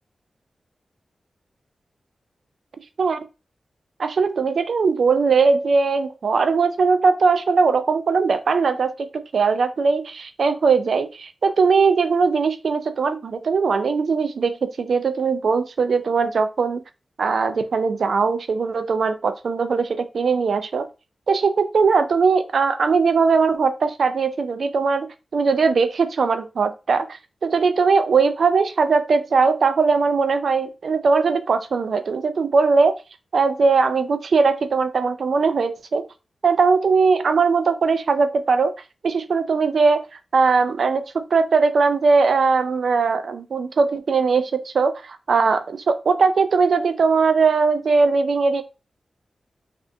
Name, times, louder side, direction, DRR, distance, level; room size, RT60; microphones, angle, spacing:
voice 1, 4.0-8.9 9.3-16.8 17.2-20.9 21.3-33.0 33.3-36.0 36.4-38.7 39.0-40.0 40.3-48.6, right 4 dB, 75° right, 0.4 m, -20 dB
3.3 x 2.6 x 2.6 m
cardioid pair, 70°, 0 cm